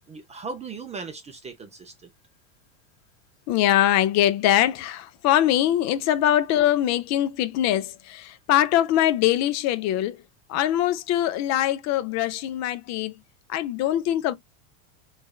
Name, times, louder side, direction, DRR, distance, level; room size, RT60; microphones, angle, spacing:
voice 1, 0.1-2.1, right 4 dB, 15° right, 0.4 m, -38 dB
voice 2, 3.5-10.2 10.5-13.1 13.5-14.3, left 12 dB, 40° left, 0.5 m, -22 dB
3.5 x 3.1 x 2.3 m
supercardioid pair, 125°, 41 cm